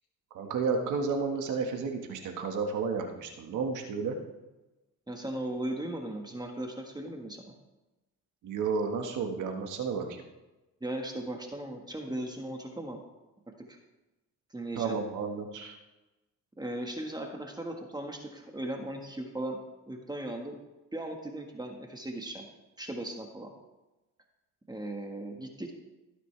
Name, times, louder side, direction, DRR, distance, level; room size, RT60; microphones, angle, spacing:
voice 1, 0.3-4.2 8.4-10.2 14.8-15.8, right 5 dB, 80° right, 4 dB, 1.7 m, -32 dB
voice 2, 5.1-7.4 10.8-13.0 13.7-13.8 14.5-15.0 16.6-19.6 19.9-20.6 20.9-22.5 22.8-23.5 24.7-25.7, right 1 dB, 15° right, 2 dB, 1.6 m, -37 dB
16.5 x 9.2 x 3.4 m, 1.1 s
cardioid pair, 90°, 30 cm